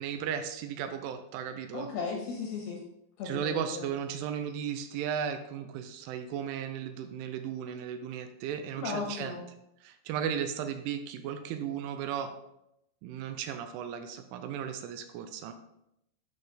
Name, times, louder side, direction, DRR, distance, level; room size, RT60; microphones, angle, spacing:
voice 1, 0.0-1.9 3.2-9.4 9.8-12.3 13.0-15.5, right 8 dB, 85° right, 8 dB, 3.1 m, -35 dB
voice 2, 1.7-2.8 3.2-3.9 8.7-9.4, left 4 dB, 70° left, 0 dB, 2.4 m, -36 dB
11.0 x 4.2 x 5.0 m, 0.82 s
omnidirectional pair, 5.7 m